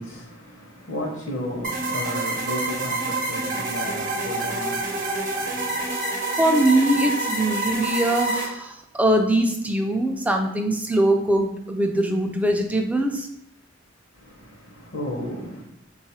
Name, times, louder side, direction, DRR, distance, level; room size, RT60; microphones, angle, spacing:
voice 1, 0.0-5.9 14.1-15.6, left 1 dB, 70° left, 0.8 m, -34 dB
sound 1, 1.6-8.5, right 2 dB, 45° right, 0.8 m, -27 dB
voice 2, 6.4-13.3, right 1 dB, 5° right, 0.3 m, -22 dB
3.9 x 2.3 x 4.2 m
head